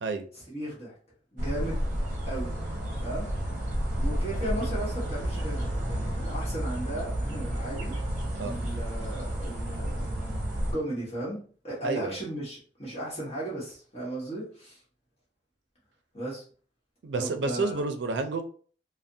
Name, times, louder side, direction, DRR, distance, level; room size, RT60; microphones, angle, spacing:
voice 1, 0.3-1.0 1.3-1.9 2.3-2.6 3.0-3.3 3.9-7.9 8.4-14.8 16.1-16.4 17.1-17.8, right 1 dB, 35° left, -6 dB, 1.1 m, -36 dB
sound 1, 1.4-10.7, equal, 45° right, 0.7 m, -31 dB
voice 2, 11.8-12.1 17.0-18.4, right 3 dB, 80° right, 7 dB, 0.4 m, -30 dB
3.2 x 2.1 x 2.6 m, 0.43 s
head